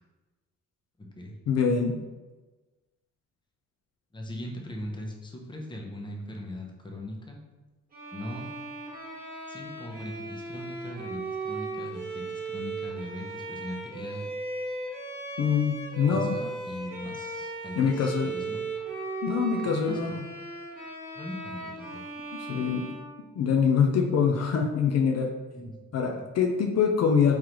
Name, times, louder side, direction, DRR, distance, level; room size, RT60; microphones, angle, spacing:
voice 1, 1.5-2.0 15.4-16.3 17.8-18.3 19.2-20.2 22.3-23.0 23.4-25.3 25.9-27.4, left 6 dB, 55° left, 2 dB, 0.5 m, -24 dB
voice 2, 4.1-7.4 8.1-8.5 9.5-14.3 16.1-18.6 19.7-20.2 21.1-22.0 25.5-25.8 26.1-26.2, left 1 dB, 15° left, 1 dB, 0.7 m, -40 dB
Bowed string instrument, 7.9-23.8, right 3 dB, 30° right, 1.4 m, -37 dB
3.7 x 3.2 x 3.0 m, 1.2 s
cardioid pair, 90°, 30 cm